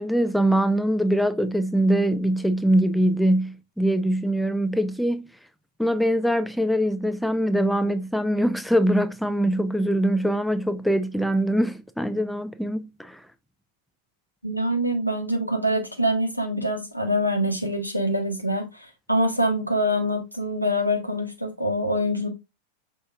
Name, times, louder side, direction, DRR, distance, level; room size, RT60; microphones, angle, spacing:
voice 1, 0.0-5.3 5.8-13.2, right 1 dB, ahead, 0.3 m, -23 dB
voice 2, 14.4-22.3, equal, 90° left, 0.9 m, -25 dB
5.6 x 3.8 x 2.4 m
figure-of-eight pair, 90°, 0 cm